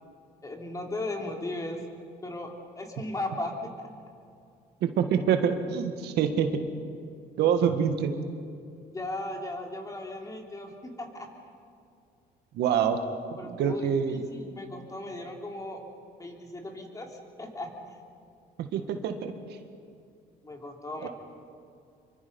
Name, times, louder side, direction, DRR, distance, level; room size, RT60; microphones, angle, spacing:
voice 1, 0.4-1.8 2.2-3.9 8.9-11.3 13.4-15.8 16.2-17.7 20.4-21.1, left 2 dB, 20° left, 1 dB, 3.4 m, -37 dB
voice 2, 4.8-6.5 7.4-8.1 12.5-13.0 13.4-14.3 18.6-19.3 21.0-21.1, right 8 dB, 75° right, 7 dB, 1.8 m, -26 dB
26.5 x 23.5 x 5.5 m, 2.4 s
cardioid pair, 110°, 17 cm